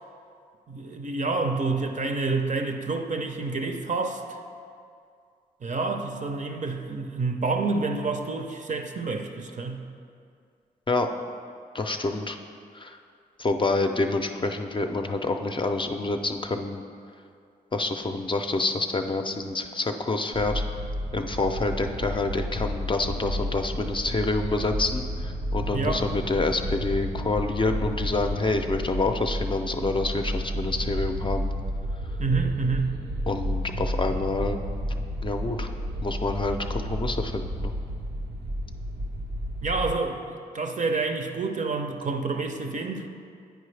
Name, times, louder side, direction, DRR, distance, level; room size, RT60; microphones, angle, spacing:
voice 1, 0.7-4.4 5.6-9.8 25.7-26.0 32.2-33.0 39.6-40.2 40.5-43.1, right 3 dB, 50° right, 5 dB, 0.6 m, -28 dB
voice 2, 11.7-12.4 12.7-13.0 13.4-16.8 17.7-20.6 21.1-31.5 33.3-34.6 35.2-35.7 36.0-37.7, left 3 dB, 30° left, 5 dB, 0.5 m, -27 dB
sound 1, 20.3-39.9, equal, 85° right, 0.7 m, -31 dB
9.1 x 4.6 x 3.3 m, 2.3 s
cardioid pair, 55°, 17 cm